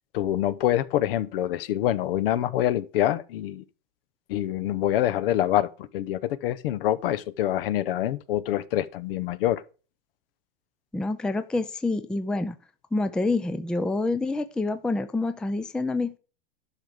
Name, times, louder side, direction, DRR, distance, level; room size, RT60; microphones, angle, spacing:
voice 1, 0.1-3.6 4.3-9.6, left 12 dB, 65° left, 1.0 m, -26 dB
voice 2, 10.9-12.5 12.9-16.2, left 2 dB, 5° left, 0.4 m, -27 dB
11.5 x 5.9 x 5.0 m
supercardioid pair, 140°, 30 cm